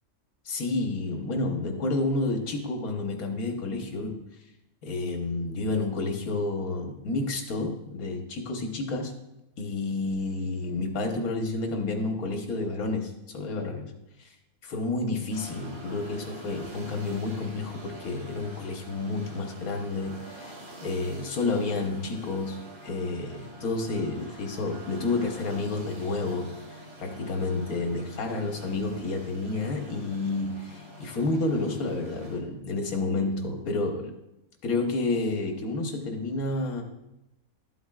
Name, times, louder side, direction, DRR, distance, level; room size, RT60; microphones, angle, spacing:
voice 1, 0.4-4.2 4.8-9.1 9.6-13.9 14.2-14.3 14.6-20.5 20.8-34.1 34.6-36.8, left 3 dB, 80° left, 3 dB, 1.6 m, -30 dB
sound 1, 15.3-32.4, right 1 dB, 45° right, 2.3 m, -46 dB
12.5 x 7.9 x 2.4 m, 0.92 s
omnidirectional pair, 1.5 m